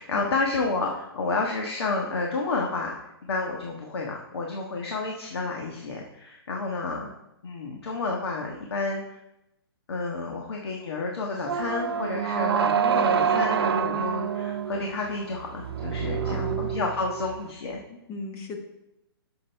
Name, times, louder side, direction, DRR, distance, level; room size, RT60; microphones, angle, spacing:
voice 1, 0.0-3.0 3.2-7.1 7.4-9.2 9.9-17.8, left 3 dB, 75° left, 0 dB, 1.4 m, -30 dB
sound 1, 11.5-17.5, right 7 dB, 70° right, 0.7 m, -27 dB
voice 2, 16.2-16.7 17.9-18.6, left 3 dB, 20° left, 3 dB, 1.0 m, -37 dB
7.7 x 6.5 x 4.5 m, 0.89 s
hypercardioid pair, 155°, 13 cm